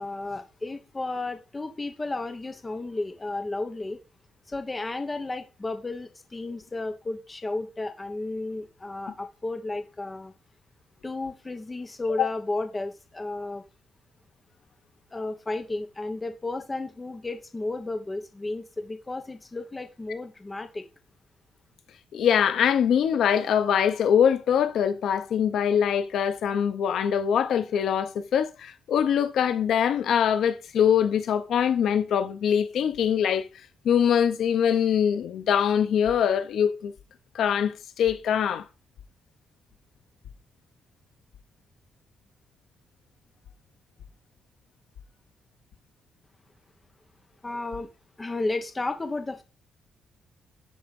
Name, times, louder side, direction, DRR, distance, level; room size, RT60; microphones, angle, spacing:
voice 1, 0.0-4.0 4.5-10.3 11.0-13.6 15.1-20.8 47.4-47.9 48.2-49.4, left 2 dB, 15° left, 1.3 m, -33 dB
voice 2, 22.1-33.5 33.8-36.9 37.3-38.6, left 8 dB, 65° left, 1.0 m, -23 dB
11.5 x 4.5 x 5.4 m
cardioid pair, 165°, 0 cm